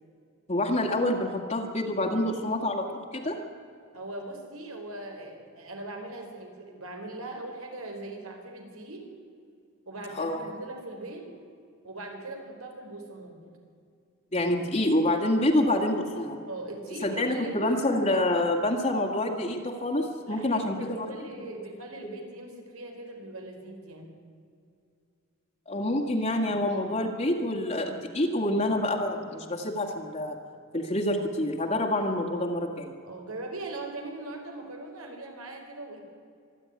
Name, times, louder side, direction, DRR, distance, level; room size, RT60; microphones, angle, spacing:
voice 1, 0.5-3.4 10.2-10.4 14.3-16.4 17.0-21.6 25.7-30.4 30.7-32.9, left 1 dB, 35° left, 0 dB, 1.9 m, -27 dB
voice 2, 3.9-9.0 9.9-11.2 11.8-13.5 15.6-15.9 16.5-17.7 20.3-24.1 33.0-36.0, right 2 dB, 90° right, 3 dB, 4.3 m, -40 dB
25.5 x 11.0 x 9.6 m, 2.4 s
head